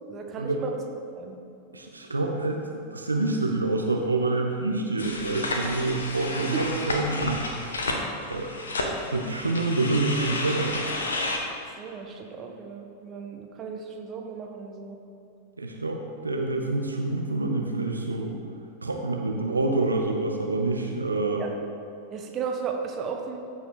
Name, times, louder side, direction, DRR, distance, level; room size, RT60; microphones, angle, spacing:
voice 1, 0.1-0.7 1.1-1.4 6.5-6.6 11.8-15.0 21.4-21.5 22.1-23.4, right 6 dB, 30° right, 2 dB, 1.3 m, -35 dB
voice 2, 1.7-7.5 7.8-7.9 8.2-8.5 9.1-10.9 15.6-18.4 18.8-21.4, right 2 dB, 80° right, 2 dB, 0.8 m, -27 dB
sound 1, 5.0-11.4, left 2 dB, 70° left, 1.3 m, -31 dB
15.0 x 5.5 x 4.8 m, 2.7 s
figure-of-eight pair, 90°, 0 cm